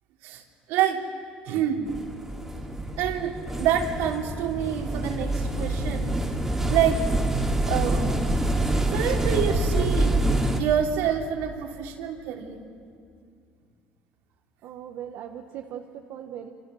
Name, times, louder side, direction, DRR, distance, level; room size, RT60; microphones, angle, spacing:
voice 1, 0.7-1.1 1.4-1.9 3.0-6.2 6.7-7.1 7.7-8.3 8.8-10.2 10.6-12.6, right 9 dB, 85° right, 1 dB, 3.0 m, -27 dB
sound 1, 1.9-10.6, right 1 dB, 10° right, 2.6 m, -26 dB
voice 2, 14.6-16.5, right 9 dB, 65° right, 3 dB, 1.4 m, -39 dB
27.5 x 27.0 x 6.5 m, 2.3 s
cardioid pair, 120°, 4 cm